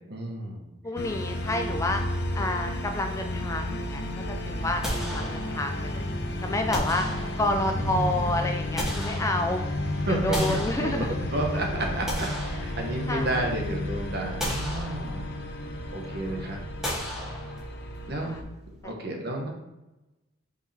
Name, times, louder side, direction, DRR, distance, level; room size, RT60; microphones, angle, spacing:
voice 1, 0.1-0.7 7.8-8.4 10.0-15.3 15.9-16.6 18.1-18.4 18.8-19.5, right 1 dB, 50° right, 0 dB, 1.2 m, -31 dB
voice 2, 0.8-2.0 2.3-6.0 6.4-7.1 7.4-9.7 10.1-11.1 13.1-13.3 16.4-16.5 18.2-18.4 18.8-18.9, left 1 dB, 15° left, 5 dB, 0.3 m, -29 dB
sound 1, 1.0-18.4, left 1 dB, 55° left, 0.8 m, -32 dB
sound 2, 4.8-5.9 6.7-7.8 8.4-9.8 10.3-11.4 11.8-13.3 13.7-13.8 14.4-15.5 16.8-17.9, equal, ahead, 1.6 m, -35 dB
5.4 x 5.2 x 3.4 m, 1.0 s
head